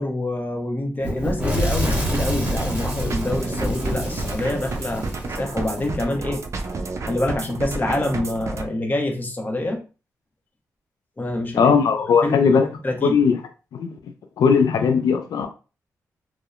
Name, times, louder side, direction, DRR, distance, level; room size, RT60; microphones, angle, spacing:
voice 1, 0.0-6.4 7.0-9.8 11.2-11.7 12.2-12.6 12.8-13.2, left 1 dB, 25° left, 0.9 m, -26 dB
Fire / Explosion, 1.0-5.9, equal, 20° right, 1.1 m, -27 dB
sound 1, 1.8-8.7, right 3 dB, 50° right, 0.4 m, -31 dB
voice 2, 11.5-12.7 13.0-13.4 13.7-13.9 14.4-15.5, left 6 dB, 75° left, 0.4 m, -18 dB
2.6 x 2.0 x 2.4 m
cardioid pair, 55°, 7 cm